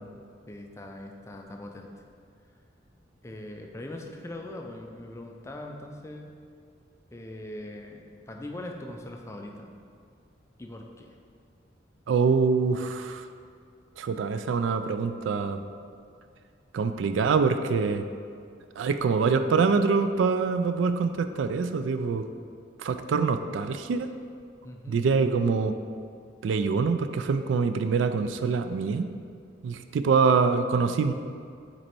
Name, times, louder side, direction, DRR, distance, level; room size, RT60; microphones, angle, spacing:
voice 1, 0.5-1.9 3.2-6.3 7.1-9.7 10.6-11.1 24.6-25.0, left 1 dB, 15° left, 2 dB, 0.4 m, -41 dB
voice 2, 12.1-13.3 14.0-15.6 16.7-18.0 18.8-22.3 22.8-24.1 24.9-25.7 26.4-29.1 29.6-31.1, right 5 dB, 80° right, 10 dB, 0.3 m, -25 dB
5.2 x 4.2 x 4.4 m, 2.3 s
head